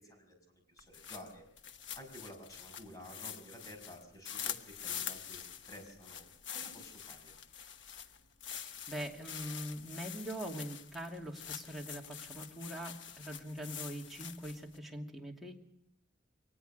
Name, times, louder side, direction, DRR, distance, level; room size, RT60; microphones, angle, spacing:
voice 1, 0.1-1.4 1.9-4.5 4.8-6.3 6.5-7.3, equal, 20° left, 4 dB, 6.1 m, -52 dB
sound 1, 0.8-14.8, left 8 dB, 75° left, 1.2 m, -45 dB
voice 2, 8.5-15.6, equal, ahead, -2 dB, 2.7 m, -43 dB
23.5 x 19.5 x 6.8 m, 0.74 s
head